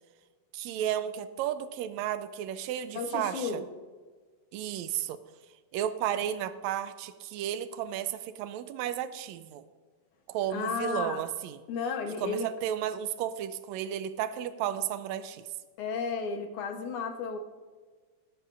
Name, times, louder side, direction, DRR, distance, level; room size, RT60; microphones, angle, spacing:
voice 1, 0.5-3.6 4.5-5.2 5.7-9.6 10.3-11.6 12.2-15.5, right 10 dB, 80° right, 12 dB, 1.8 m, -33 dB
voice 2, 2.9-3.6 10.5-11.2 11.7-12.5 15.8-17.4, left 5 dB, 75° left, 5 dB, 2.4 m, -33 dB
19.5 x 9.9 x 2.5 m, 1.5 s
omnidirectional pair, 3.5 m